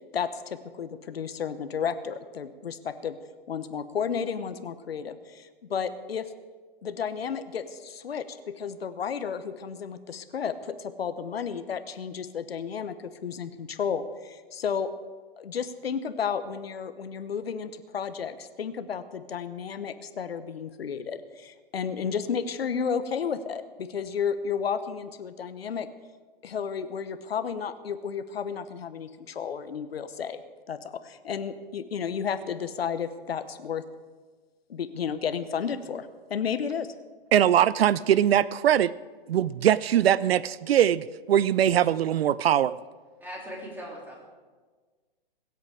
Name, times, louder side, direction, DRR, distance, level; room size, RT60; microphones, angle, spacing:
voice 1, 0.1-3.2 3.5-6.3 6.8-14.9 15.4-25.9 26.4-30.4 30.7-33.8 34.7-36.9, left 7 dB, 90° left, 11 dB, 1.0 m, -32 dB
voice 2, 37.3-38.9 39.3-42.8, right 10 dB, 85° right, 19 dB, 0.5 m, -21 dB
voice 3, 43.2-44.2, equal, 5° right, -3 dB, 3.4 m, -39 dB
22.0 x 8.1 x 4.9 m, 1.4 s
hypercardioid pair, 135°, 30 cm